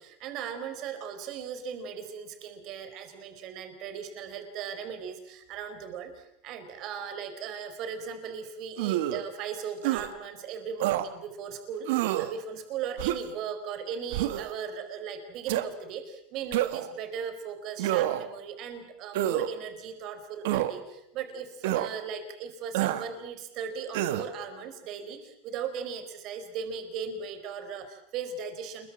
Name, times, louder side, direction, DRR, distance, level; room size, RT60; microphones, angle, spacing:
voice 1, 0.0-28.9, right 7 dB, 45° right, 8 dB, 4.6 m, -38 dB
sound 1, 8.8-9.2 9.8-10.1 10.8-11.1 11.9-12.3 13.0-13.4 14.1-14.5 15.5-15.7 16.5-16.9 17.8-18.3 19.1-19.5 20.4-20.7 21.6-21.9 22.7-23.1 23.9-24.3, right 14 dB, 75° right, 1.7 m, -27 dB
28.0 x 22.5 x 7.6 m, 0.77 s
supercardioid pair, 145°, 0 cm